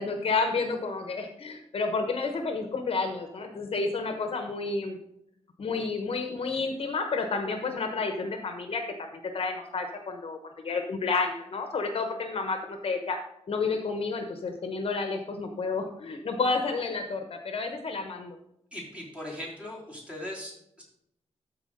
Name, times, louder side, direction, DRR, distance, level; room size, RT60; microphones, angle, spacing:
voice 1, 0.0-5.0 5.6-13.2 13.5-18.4, left 4 dB, 55° left, 5 dB, 1.0 m, -30 dB
voice 2, 18.7-20.8, left 1 dB, 10° right, -4 dB, 3.2 m, -39 dB
13.0 x 4.6 x 3.9 m, 0.78 s
wide cardioid pair, 145°, 11 cm